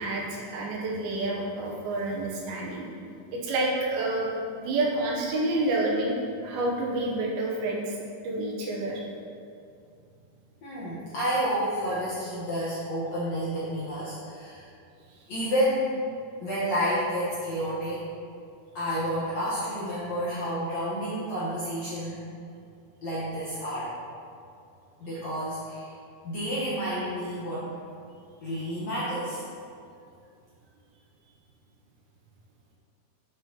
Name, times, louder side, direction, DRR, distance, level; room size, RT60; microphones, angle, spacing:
voice 1, 0.0-2.9 3.3-6.2 6.4-8.0 8.2-9.0 15.1-15.2, right 2 dB, 75° right, -2 dB, 2.7 m, -29 dB
voice 2, 10.6-14.7 15.3-15.9 16.4-18.0 18.7-22.2 23.0-23.9 25.0-25.9 26.2-27.7 28.4-29.4, equal, 65° left, -10 dB, 1.7 m, -30 dB
7.6 x 7.4 x 2.9 m, 2.4 s
omnidirectional pair, 4.7 m